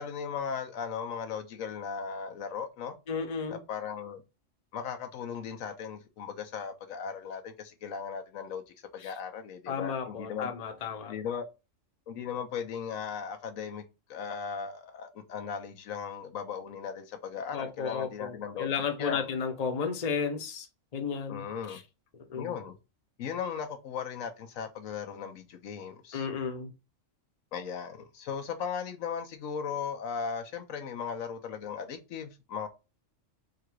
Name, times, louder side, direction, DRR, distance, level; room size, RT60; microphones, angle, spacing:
voice 1, 0.0-2.9 3.5-4.2 4.7-10.5 11.1-11.5 12.1-18.7 19.0-19.3 21.3-21.8 22.3-22.8 23.2-26.3 27.5-32.7, left 7 dB, 85° left, 1.2 m, -37 dB
voice 2, 3.1-3.6 9.7-11.1 17.5-20.7 20.9-21.8 22.3-22.5 26.1-26.7, left 6 dB, 35° left, 0.7 m, -33 dB
3.7 x 2.5 x 4.5 m
omnidirectional pair, 1.4 m